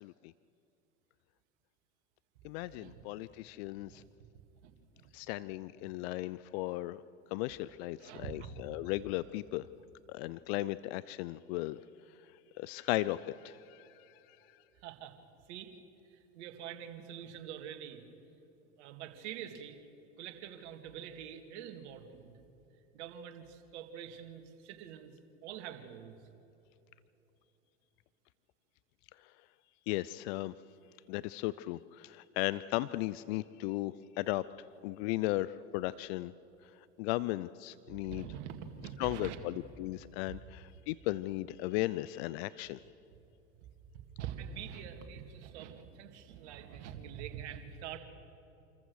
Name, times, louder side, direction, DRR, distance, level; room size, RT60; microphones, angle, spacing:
voice 1, 0.0-0.3 2.4-4.0 5.1-7.0 7.3-9.7 10.1-11.8 12.6-14.1 29.9-30.5 31.1-34.4 34.8-36.3 37.0-38.3 39.0-42.8, left 17 dB, 60° left, 18 dB, 0.5 m, -36 dB
voice 2, 4.6-5.1 8.0-8.5 14.8-15.2 15.5-15.7 16.1-18.0 18.8-19.8 20.2-22.3 22.9-25.1 25.4-26.2 37.9-39.4 43.9-48.0, right 9 dB, 65° right, 5 dB, 2.4 m, -45 dB
27.5 x 14.5 x 6.5 m, 2.9 s
hypercardioid pair, 90°, 36 cm